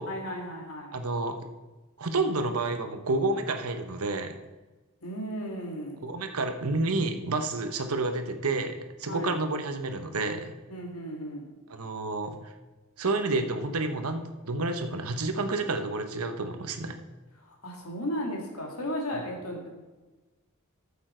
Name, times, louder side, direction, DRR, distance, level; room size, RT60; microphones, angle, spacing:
voice 1, 0.1-1.0 5.0-6.0 9.1-9.4 10.7-11.6 17.4-19.7, equal, 75° left, 1 dB, 2.3 m, -35 dB
voice 2, 0.9-1.4 2.0-4.3 6.0-10.5 11.7-12.5 13.0-17.0, right 3 dB, 80° right, 7 dB, 1.0 m, -30 dB
13.5 x 7.2 x 4.5 m, 1.2 s
head